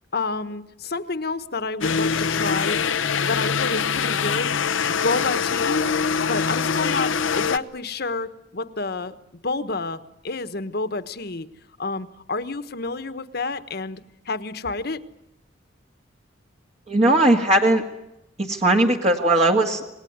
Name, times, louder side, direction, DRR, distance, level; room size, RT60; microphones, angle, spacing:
voice 1, 0.1-2.8 3.2-4.6 4.9-5.9 6.3-9.2 9.4-11.5 11.8-15.0, left 3 dB, 55° left, 12 dB, 1.4 m, -29 dB
sound 1, 1.8-7.6, left 6 dB, 90° left, 0.9 m, -23 dB
voice 2, 16.9-17.8 18.4-19.9, right 1 dB, 35° right, 2 dB, 2.0 m, -18 dB
27.5 x 20.0 x 9.5 m, 0.87 s
head